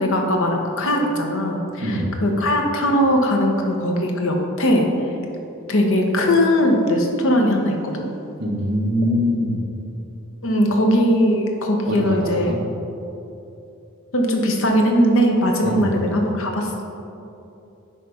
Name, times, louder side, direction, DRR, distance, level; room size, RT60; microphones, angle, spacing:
voice 1, 0.0-4.9 5.7-8.1 10.4-12.5 14.1-16.8, equal, 60° left, 2 dB, 1.0 m, -19 dB
voice 2, 1.8-2.1 8.4-9.6 11.9-12.5 15.6-15.9, left 1 dB, 50° right, -1 dB, 1.2 m, -23 dB
10.0 x 3.3 x 5.5 m, 2.8 s
head